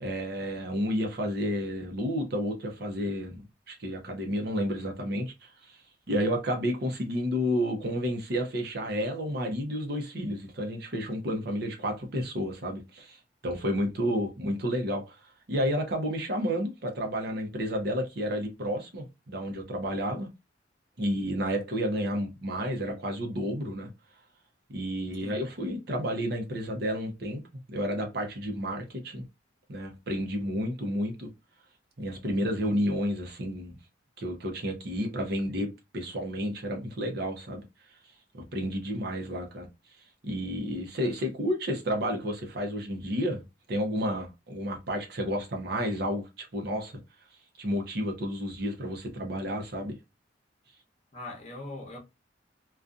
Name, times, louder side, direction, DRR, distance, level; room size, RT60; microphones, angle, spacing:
voice 1, 0.0-3.4 3.7-5.8 6.1-15.2 15.5-20.3 21.0-23.9 24.7-27.4 27.7-29.2 29.7-31.3 32.0-33.7 34.2-37.6 38.3-39.7 40.2-43.4 43.7-47.0 47.6-49.9, equal, 60° right, 0.7 m, -31 dB
voice 2, 51.1-52.0, left 2 dB, 40° left, 0.8 m, -41 dB
2.6 x 2.3 x 2.4 m
head